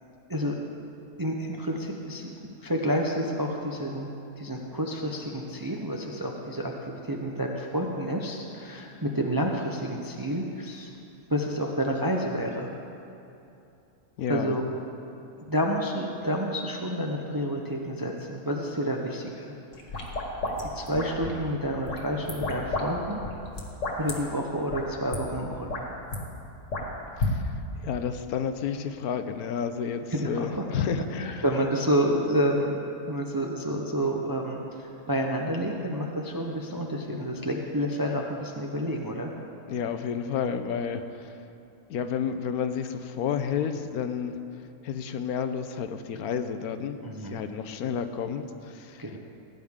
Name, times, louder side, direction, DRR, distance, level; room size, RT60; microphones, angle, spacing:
voice 1, 1.2-2.3 2.6-10.9 11.3-12.7 14.3-14.6 15.5-19.5 20.6-23.2 23.9-25.8 30.1-30.6 31.2-32.8 33.0-39.3 47.0-47.4 49.0-49.2, equal, 25° right, 1 dB, 0.4 m, -29 dB
voice 2, 14.2-14.6 27.2-27.6 27.8-31.4 39.7-41.4 41.9-44.4 44.8-49.1, left 7 dB, 80° left, 9 dB, 1.1 m, -31 dB
sound 1, 19.7-21.4 21.9-22.9 23.1-24.1 24.7-24.8 25.1-25.2 25.5-26.2 26.7-27.3, left 2 dB, 55° left, 1.8 m, -31 dB
17.5 x 9.7 x 3.6 m, 2.8 s
omnidirectional pair, 1.6 m